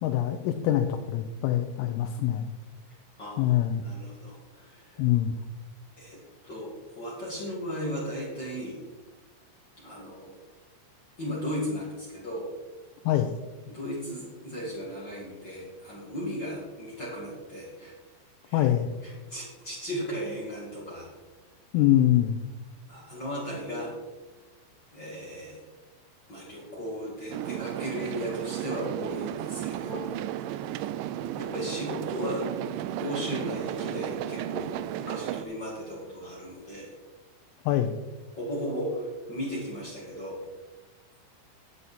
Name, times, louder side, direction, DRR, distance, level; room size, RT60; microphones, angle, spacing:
voice 1, 0.0-2.5 3.4-3.8 5.0-5.3 13.1-13.3 18.5-18.9 21.7-22.4 37.7-38.0, left 12 dB, 90° left, 6 dB, 3.3 m, -24 dB
voice 2, 3.2-5.0 6.0-6.2 6.4-8.8 9.8-10.3 11.2-12.5 13.7-17.9 18.5-18.7 19.0-21.1 22.9-23.9 24.9-25.6 26.3-30.1 31.3-32.5 33.0-36.9 38.3-40.4, equal, 45° left, -6 dB, 1.4 m, -36 dB
sound 1, 27.3-35.4, right 12 dB, 90° right, 2.6 m, -34 dB
11.0 x 9.2 x 4.2 m, 1.2 s
omnidirectional pair, 5.8 m